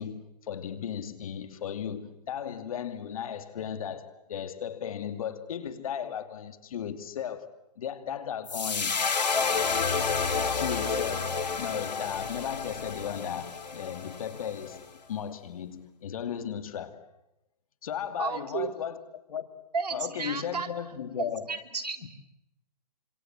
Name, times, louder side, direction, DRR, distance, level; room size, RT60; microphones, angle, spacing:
voice 1, 0.0-9.0 10.4-17.0 17.8-19.0 19.3-19.6 19.9-21.5 22.0-22.1, left 8 dB, 55° left, 2.7 m, -36 dB
sound 1, 8.5-14.8, left 5 dB, 90° left, 2.9 m, -30 dB
voice 2, 18.2-18.7 19.7-20.7 21.5-22.1, right 5 dB, 80° right, 4.2 m, -32 dB
26.5 x 26.0 x 7.6 m
hypercardioid pair, 150°, 21 cm